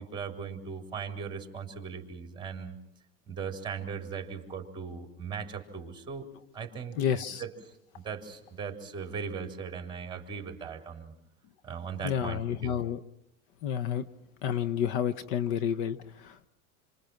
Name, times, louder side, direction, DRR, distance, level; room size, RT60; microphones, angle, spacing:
voice 1, 0.0-2.8 3.3-6.3 6.5-7.5 7.9-11.1 11.6-12.8, right 6 dB, 10° right, 3 dB, 3.7 m, -38 dB
voice 2, 7.0-7.4 12.0-13.0 13.6-14.0 14.4-16.5, left 9 dB, 55° left, 12 dB, 1.1 m, -30 dB
28.5 x 25.5 x 6.0 m, 0.80 s
supercardioid pair, 145°, 42 cm